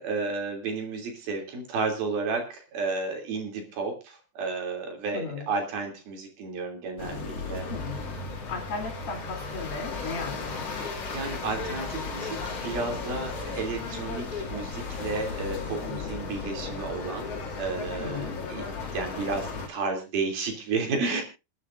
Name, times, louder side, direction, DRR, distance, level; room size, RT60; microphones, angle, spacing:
voice 1, 0.0-7.6 11.1-17.3 17.6-18.6 18.9-21.2, right 4 dB, 65° right, 3 dB, 4.8 m, -32 dB
voice 2, 5.1-5.5 7.7-8.1 8.5-10.9 15.8-16.1 18.0-18.5, left 4 dB, 60° left, 3 dB, 4.9 m, -36 dB
sound 1, 7.0-19.7, left 4 dB, 40° left, 3.1 m, -35 dB
28.5 x 9.6 x 2.6 m, 0.28 s
omnidirectional pair, 4.7 m